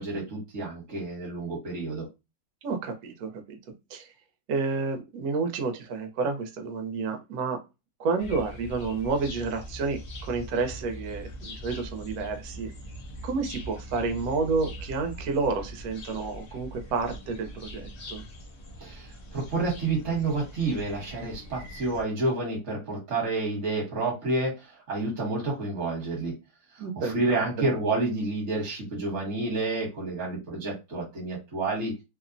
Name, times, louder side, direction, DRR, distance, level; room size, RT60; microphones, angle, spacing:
voice 1, 0.0-2.1 18.8-26.3 26.7-31.9, right 3 dB, 50° right, -3 dB, 1.2 m, -29 dB
voice 2, 2.6-3.6 3.9-4.1 4.5-7.6 8.0-12.7 13.2-18.2 26.8-27.1, right 4 dB, 65° right, 5 dB, 1.0 m, -30 dB
sound 1, 8.2-22.0, equal, 60° left, 0.5 m, -42 dB
2.9 x 2.0 x 2.5 m, 0.25 s
omnidirectional pair, 1.9 m